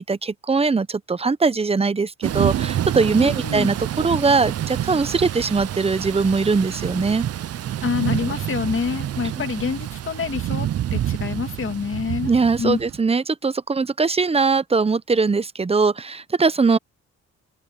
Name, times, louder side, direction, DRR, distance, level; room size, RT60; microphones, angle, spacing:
voice 1, 0.0-7.2 12.3-16.8, right 4 dB, 20° right, 1.0 m, -21 dB
Thunder / Rain, 2.2-13.0, right 11 dB, 55° right, 0.8 m, -27 dB
voice 2, 3.2-3.7 7.8-12.3 12.6-12.8, left 6 dB, 45° left, 2.7 m, -27 dB
cardioid pair, 90°, 30 cm